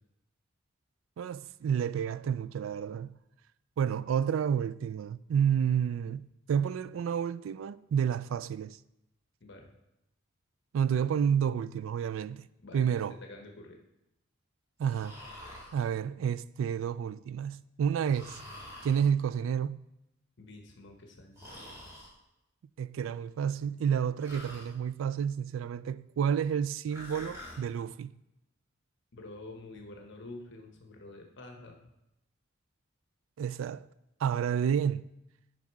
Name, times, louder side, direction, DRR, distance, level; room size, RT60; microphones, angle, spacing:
voice 1, 1.2-3.2 3.8-8.8 10.7-12.5 12.7-13.2 14.8-15.2 15.7-18.4 18.8-19.9 22.8-28.2 33.4-33.9 34.2-35.1, right 8 dB, 85° right, 0.3 m, -30 dB
voice 2, 12.6-13.8 20.4-21.5 29.1-31.8, left 2 dB, 65° left, 1.1 m, -48 dB
Breathing, 14.8-15.8 18.1-19.1 21.4-22.1 24.2-24.7 26.9-27.6, left 1 dB, 15° right, 2.5 m, -46 dB
9.3 x 5.3 x 4.7 m
head